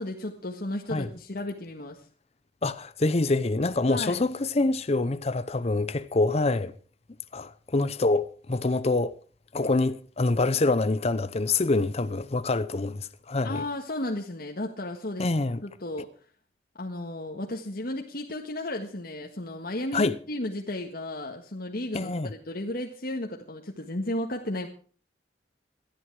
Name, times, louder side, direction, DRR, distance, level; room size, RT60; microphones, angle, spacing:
voice 1, 0.0-2.1 3.9-4.2 13.4-15.3 15.6-16.1 16.7-24.7, left 1 dB, 55° left, 1.6 m, -34 dB
voice 2, 2.6-6.7 7.3-9.1 9.5-13.6 15.2-15.6 19.9-20.1 21.9-22.3, left 2 dB, 35° left, 0.7 m, -26 dB
18.5 x 13.0 x 4.8 m
head